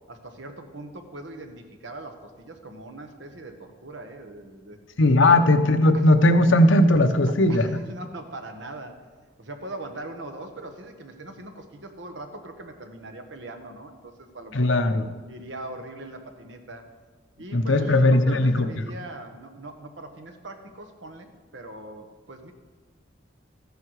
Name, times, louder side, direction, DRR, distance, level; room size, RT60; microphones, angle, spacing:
voice 1, 0.1-4.8 5.2-5.4 7.5-9.0 9.4-14.8 15.3-16.8 17.4-22.5, right 2 dB, 70° right, 5 dB, 1.4 m, -41 dB
voice 2, 5.0-7.7 14.5-15.1 17.5-18.7, left 1 dB, 80° left, 8 dB, 0.9 m, -18 dB
14.0 x 10.5 x 4.8 m, 1.4 s
head